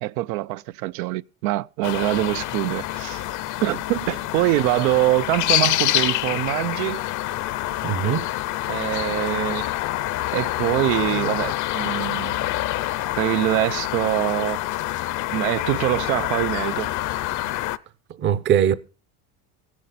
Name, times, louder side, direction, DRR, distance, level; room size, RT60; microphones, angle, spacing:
voice 1, 0.0-3.2 3.6-7.0 8.7-9.6 10.3-12.5 13.2-14.6 15.3-16.9, right 18 dB, 80° right, 0.6 m, -24 dB
sound 1, 1.8-17.8, left 15 dB, 45° left, 0.7 m, -26 dB
voice 2, 7.8-8.3 18.2-18.7, right 9 dB, 25° right, 0.6 m, -20 dB
15.5 x 11.0 x 4.2 m
cardioid pair, 145°, 43 cm